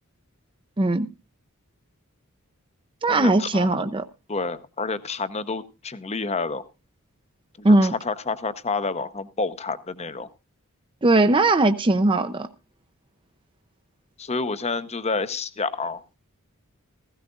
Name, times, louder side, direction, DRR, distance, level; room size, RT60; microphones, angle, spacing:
voice 1, 0.8-1.1 3.0-4.0 7.6-7.9 11.0-12.5, right 2 dB, 25° right, 0.6 m, -19 dB
voice 2, 3.1-3.7 4.3-6.6 7.6-10.3 14.2-16.0, left 4 dB, 30° left, 0.8 m, -29 dB
16.0 x 15.5 x 2.5 m
head